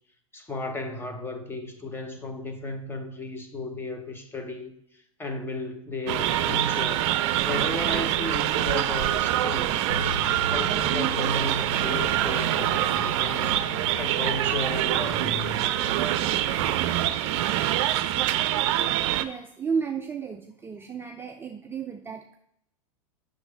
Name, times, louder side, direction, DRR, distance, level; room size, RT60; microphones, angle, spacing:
voice 1, 0.3-4.7 5.2-7.1 7.4-9.8 10.5-13.6 14.0-15.6, left 2 dB, 15° left, 6 dB, 1.1 m, -34 dB
sound 1, 6.1-19.2, right 13 dB, 55° right, 0.6 m, -25 dB
sound 2, 9.9-16.8, left 3 dB, 65° left, 1.5 m, -39 dB
voice 2, 19.2-22.4, right 6 dB, 15° right, 4 dB, 0.4 m, -33 dB
7.9 x 6.3 x 3.5 m, 0.71 s
hypercardioid pair, 110°, 18 cm